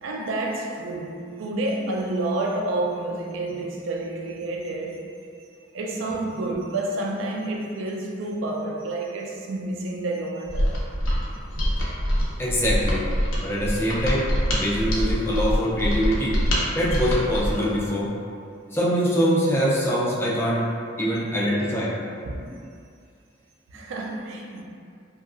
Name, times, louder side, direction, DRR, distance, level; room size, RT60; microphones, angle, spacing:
voice 1, 0.0-5.1 5.7-10.8 22.2-22.6 23.7-24.6, right 2 dB, 75° right, 0.4 m, -29 dB
Mechanisms, 10.5-17.7, equal, 90° left, 0.6 m, -25 dB
voice 2, 12.4-13.1 13.4-16.4 16.7-18.1 18.7-20.7 21.0-22.0, equal, 10° left, 0.3 m, -23 dB
2.8 x 2.3 x 2.4 m
head